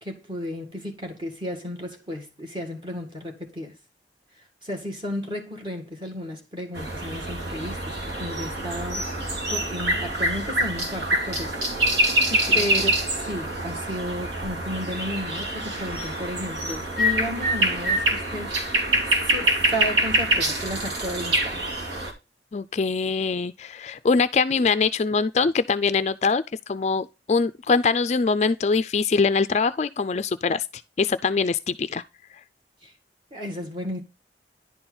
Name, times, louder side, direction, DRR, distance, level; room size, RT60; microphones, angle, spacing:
voice 1, 0.0-3.8 4.6-9.1 9.5-11.6 12.5-18.7 19.2-21.7 32.8-32.9 33.3-34.0, equal, 25° right, 1.9 m, -33 dB
sound 1, 6.7-22.1, right 1 dB, 85° right, 2.5 m, -25 dB
voice 2, 22.5-30.6 31.0-32.0, left 4 dB, 40° left, 0.4 m, -23 dB
10.5 x 4.4 x 3.9 m
head